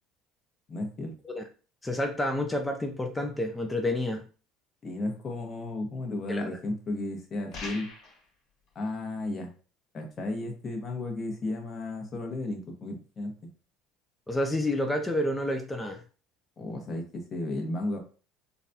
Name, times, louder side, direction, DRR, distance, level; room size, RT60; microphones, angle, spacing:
voice 1, 0.7-1.1 4.8-7.9 8.7-9.5 9.9-13.3 16.6-18.0, left 2 dB, 35° left, 1 dB, 1.0 m, -34 dB
voice 2, 1.8-4.2 6.3-6.6 14.3-16.0, left 1 dB, 10° left, 4 dB, 0.4 m, -29 dB
sound 1, 7.5-8.2, left 3 dB, 50° left, 1.4 m, -40 dB
3.8 x 2.3 x 2.7 m, 0.36 s
cardioid pair, 125°, 0 cm